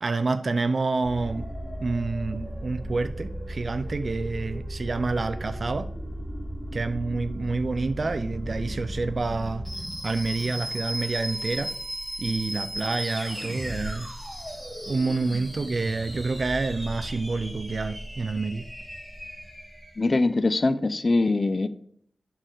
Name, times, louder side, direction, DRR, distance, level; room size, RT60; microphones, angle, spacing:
voice 1, 0.0-1.4 1.8-5.9 6.7-9.7 10.0-11.7 12.2-14.1 14.9-18.6, right 3 dB, 50° right, 11 dB, 0.4 m, -28 dB
sound 1, 1.0-20.4, equal, 5° left, 3.4 m, -35 dB
voice 2, 20.0-21.7, left 2 dB, 40° left, 13 dB, 0.5 m, -22 dB
11.0 x 4.3 x 3.8 m, 0.64 s
wide cardioid pair, 120°, 0 cm